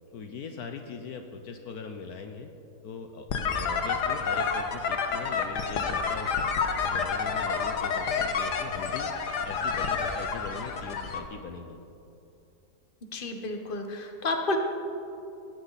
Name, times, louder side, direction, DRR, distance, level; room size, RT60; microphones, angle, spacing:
voice 1, 0.1-2.5 2.8-3.3 3.5-6.5 6.8-9.1 9.4-11.8, left 5 dB, 70° left, 6 dB, 1.3 m, -40 dB
sound 1, 3.3-11.2, left 5 dB, 85° left, 1.7 m, -29 dB
voice 2, 13.1-14.6, left 2 dB, 35° left, 4 dB, 1.4 m, -31 dB
20.0 x 15.0 x 4.1 m, 2.7 s
omnidirectional pair, 1.7 m